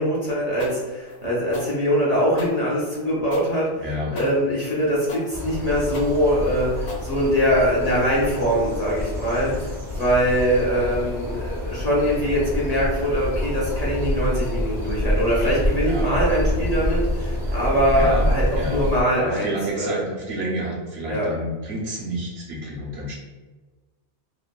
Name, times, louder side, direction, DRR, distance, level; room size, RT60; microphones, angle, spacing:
voice 1, 0.0-20.0 21.1-21.3, equal, 45° left, -6 dB, 0.6 m, -23 dB
sound 1, 0.6-7.7, left 1 dB, 75° left, 0.9 m, -40 dB
voice 2, 3.8-4.2 15.8-16.1 17.4-17.6 17.9-18.3 18.5-18.8 19.1-23.1, right 1 dB, 70° right, -4 dB, 1.0 m, -30 dB
sound 2, 5.3-19.0, equal, 45° right, 0.7 m, -27 dB
3.0 x 2.1 x 2.2 m, 1.3 s
omnidirectional pair, 1.1 m